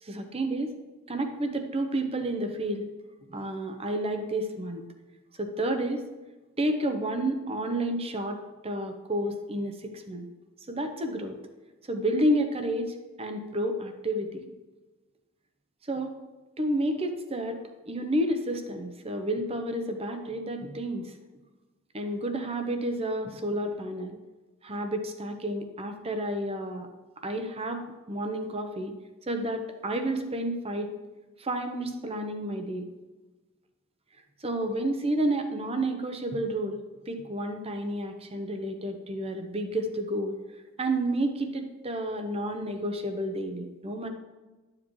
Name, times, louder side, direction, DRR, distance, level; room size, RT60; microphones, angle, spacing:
voice 1, 0.0-0.7 1.1-2.9 3.3-4.8 5.4-6.0 6.6-10.3 10.7-11.4 11.9-14.4 15.9-16.1 16.6-17.6 17.9-21.1 21.9-24.2 24.6-26.9 27.2-27.8 28.1-28.9 29.3-30.9 31.4-32.9 34.4-36.8 37.1-40.4 40.8-44.1, right 1 dB, 30° right, 6 dB, 0.8 m, -30 dB
11.5 x 7.4 x 3.2 m, 1.2 s
head